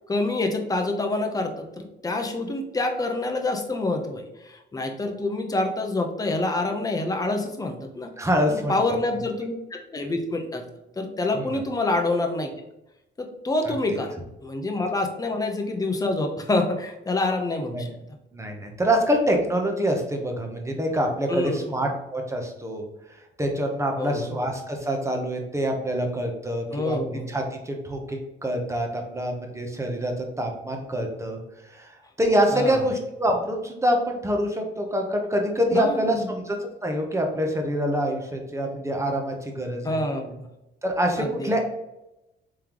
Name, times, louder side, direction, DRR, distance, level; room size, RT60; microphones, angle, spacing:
voice 1, 0.1-8.1 8.5-10.6 11.0-12.5 13.2-14.1 14.4-17.9 21.3-21.8 24.0-24.4 26.7-27.3 32.5-32.8 35.7-36.3 39.8-40.4 41.2-41.5, left 2 dB, 20° left, 3 dB, 0.7 m, -27 dB
voice 2, 8.2-9.0 11.3-11.6 13.6-13.7 17.7-17.9 18.3-22.8 23.4-27.0 27.3-31.4 31.7-40.0 40.8-41.7, equal, 15° right, 2 dB, 0.8 m, -26 dB
3.7 x 3.4 x 3.0 m, 0.91 s
cardioid pair, 90°, 20 cm